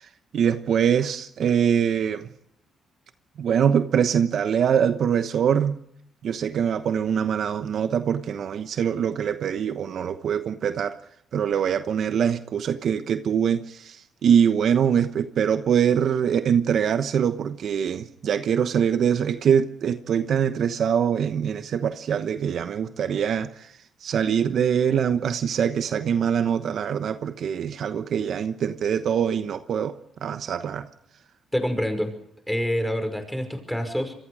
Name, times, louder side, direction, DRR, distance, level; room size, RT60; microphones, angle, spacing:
voice 1, 0.0-2.3 3.4-5.8 6.2-11.0 11.3-23.7 24.0-30.9, right 8 dB, 65° right, 1.1 m, -23 dB
voice 2, 31.5-32.1 32.5-34.1, equal, ahead, 5.5 m, -26 dB
26.5 x 22.0 x 4.9 m
cardioid pair, 90°, 0 cm